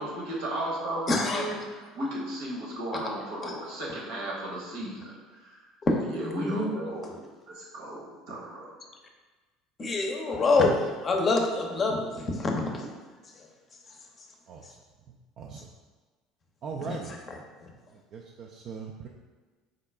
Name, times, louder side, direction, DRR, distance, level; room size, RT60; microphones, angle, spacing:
voice 1, 0.0-5.7 6.0-7.1 7.5-8.7, right 1 dB, 70° right, -4 dB, 1.0 m, -35 dB
voice 2, 1.1-1.4 2.9-3.0 3.4-3.5 5.9-6.0 6.3-6.7 9.8-12.9, left 3 dB, 35° left, 2 dB, 0.6 m, -26 dB
voice 3, 15.4-15.7 16.6-17.2 17.9-19.1, right 5 dB, 50° right, -1 dB, 0.3 m, -39 dB
3.8 x 2.2 x 3.4 m, 1.3 s
hypercardioid pair, 70°, 0 cm